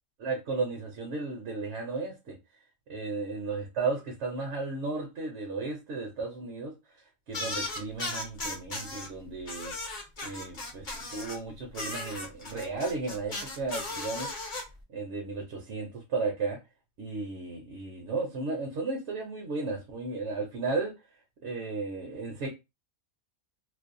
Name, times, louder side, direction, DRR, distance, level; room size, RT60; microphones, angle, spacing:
voice 1, 0.2-2.4 2.9-6.7 7.3-9.7 10.2-14.3 14.9-16.6 17.0-20.9 21.4-22.5, right 3 dB, 60° right, 0.8 m, -34 dB
sound 1, 7.3-9.1 9.5-11.4 11.7-14.6, left 2 dB, 40° left, 0.9 m, -36 dB
2.6 x 2.0 x 2.4 m
omnidirectional pair, 1.5 m